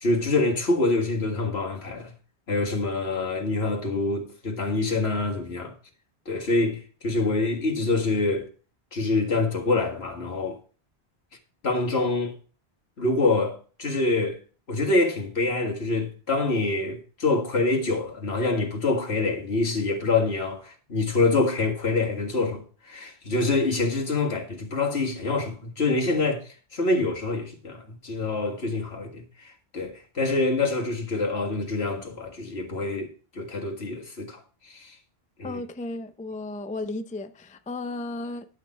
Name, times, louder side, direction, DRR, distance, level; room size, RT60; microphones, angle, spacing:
voice 1, 0.0-2.1 2.5-5.7 6.3-8.5 8.9-10.6 11.6-12.3 13.0-14.4 14.7-26.4 26.7-34.4 34.7-34.9 35.4-35.6, left 3 dB, 75° left, 2.1 m, -26 dB
voice 2, 35.4-38.5, left 2 dB, 10° left, 0.4 m, -34 dB
11.5 x 6.4 x 4.3 m
omnidirectional pair, 1.1 m